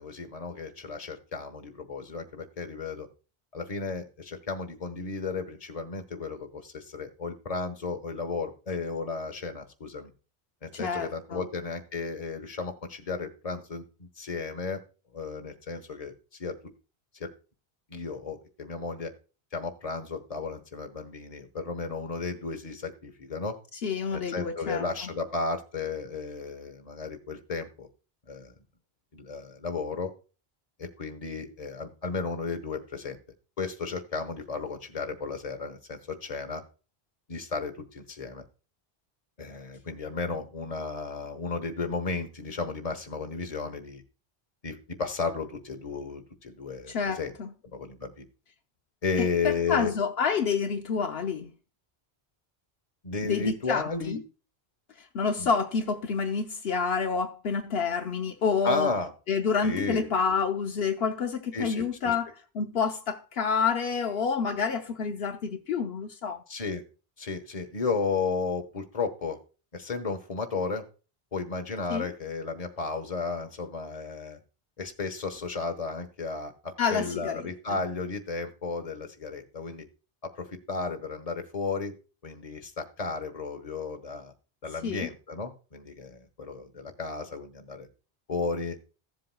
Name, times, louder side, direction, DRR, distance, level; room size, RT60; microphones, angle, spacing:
voice 1, 0.0-3.1 3.5-10.1 10.6-14.8 15.1-16.1 16.4-16.5 17.2-17.3 17.9-19.1 19.5-23.5 24.1-27.9 28.3-28.5 29.1-30.1 30.8-33.2 33.6-36.6 37.3-38.4 39.4-44.0 44.6-47.3 47.7-48.2 49.0-49.9 53.0-54.2 55.4-55.5 58.6-59.1 59.6-60.1 61.5-62.1 66.5-66.8 67.2-69.4 69.7-70.8 71.3-74.4 74.8-79.8 80.4-81.9 82.2-84.3 84.6-87.9 88.3-88.8, left 4 dB, 35° left, 1.2 m, -34 dB
voice 2, 10.7-11.5 23.8-24.8 46.9-47.5 49.2-51.5 53.3-54.2 55.1-58.9 59.3-62.3 62.5-66.4 71.9-72.1 76.8-77.5 84.8-85.1, left 5 dB, 70° left, 1.0 m, -28 dB
15.5 x 7.6 x 2.2 m
omnidirectional pair, 1.0 m